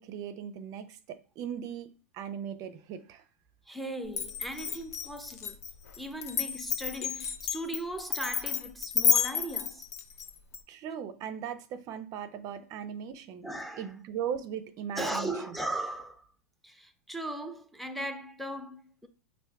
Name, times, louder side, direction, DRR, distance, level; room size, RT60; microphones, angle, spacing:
voice 1, 0.0-3.3 10.7-13.5 13.8-15.5, right 8 dB, 45° right, 0.5 m, -38 dB
voice 2, 3.7-5.6 6.0-9.8 13.4-13.9 15.0-16.3 16.6-19.1, right 1 dB, ahead, 0.6 m, -37 dB
Glass, 4.1-10.6, left 7 dB, 75° left, 0.7 m, -30 dB
4.5 x 2.5 x 3.4 m
hypercardioid pair, 100°, 8 cm